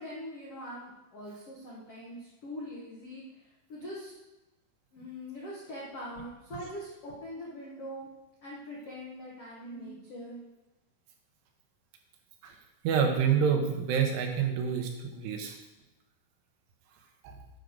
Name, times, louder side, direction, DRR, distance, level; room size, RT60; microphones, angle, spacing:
voice 1, 0.0-3.2 3.7-4.2 4.9-8.1 8.4-10.4, equal, 80° left, -5 dB, 1.3 m, -42 dB
voice 2, 12.9-15.6 17.2-17.4, right 7 dB, 85° right, 3 dB, 3.7 m, -28 dB
9.4 x 5.2 x 6.4 m, 1.0 s
omnidirectional pair, 5.4 m